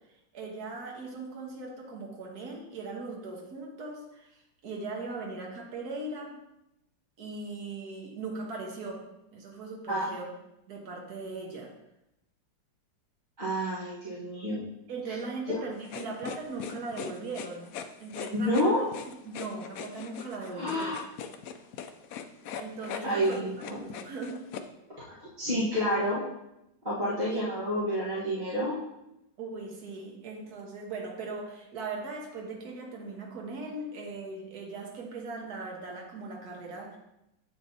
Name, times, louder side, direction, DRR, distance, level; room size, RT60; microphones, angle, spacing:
voice 1, 0.3-6.4 7.2-9.0 9.3-10.3 10.7-11.7 14.9-18.7 19.2-20.9 22.5-23.4 23.7-24.4 27.2-27.4 29.4-37.0, right 3 dB, 55° right, 0 dB, 1.7 m, -39 dB
voice 2, 13.4-14.6 15.1-15.2 15.5-15.6 18.3-18.8 20.5-21.0 23.0-23.9 25.1-26.2 26.8-28.8, equal, 25° right, -9 dB, 1.3 m, -29 dB
sound 1, 15.9-24.7, left 8 dB, 85° left, 0.7 m, -40 dB
7.8 x 7.3 x 2.7 m, 0.88 s
omnidirectional pair, 2.1 m